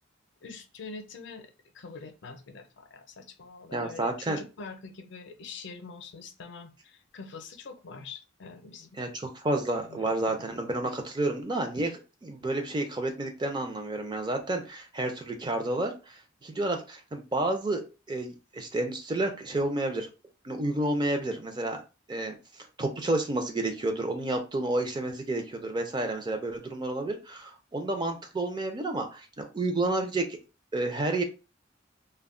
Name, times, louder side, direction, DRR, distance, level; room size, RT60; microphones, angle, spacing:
voice 1, 0.4-1.5 1.7-9.0 9.8-10.0 10.3-10.5, left 4 dB, 65° left, 7 dB, 0.5 m, -44 dB
voice 2, 3.7-4.4 9.0-20.1 20.4-21.8 22.1-30.4 30.7-31.2, right 2 dB, 25° right, 4 dB, 0.5 m, -30 dB
2.2 x 2.1 x 3.6 m, 0.31 s
head